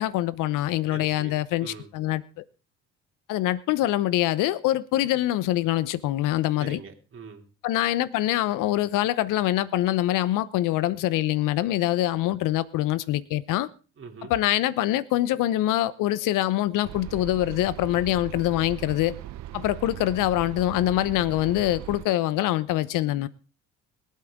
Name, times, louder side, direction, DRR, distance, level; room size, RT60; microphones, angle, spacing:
voice 1, 0.0-2.4 3.3-6.8 7.6-13.7 14.3-19.2 19.5-23.3, left 14 dB, 65° left, 0.9 m, -24 dB
voice 2, 0.9-1.9 6.6-7.4 14.0-14.3, right 5 dB, 40° right, 3.1 m, -43 dB
sound 1, 16.8-22.1, right 14 dB, 55° right, 0.8 m, -39 dB
22.5 x 8.5 x 3.7 m
supercardioid pair, 75°, 33 cm